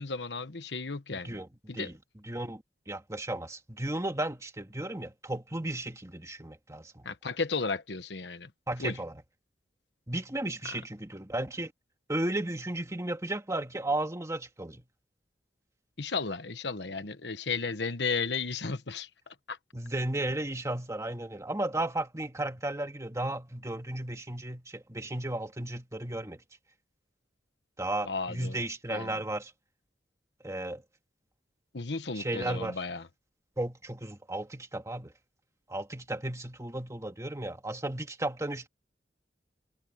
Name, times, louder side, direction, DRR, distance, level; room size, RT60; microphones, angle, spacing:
voice 1, 0.0-1.4 1.7-1.9 7.0-8.5 8.8-9.0 10.6-10.8 16.0-19.6 28.1-28.6 28.9-29.2 31.7-33.1, left 4 dB, 70° left, 1.3 m, -34 dB
voice 2, 1.1-1.5 1.7-1.9 2.3-7.1 8.7-9.1 10.1-11.7 12.1-14.8 19.7-26.4 27.8-29.5 30.4-30.8 32.1-32.8 33.6-35.1 35.7-38.7, right 1 dB, 20° right, 2.1 m, -34 dB
head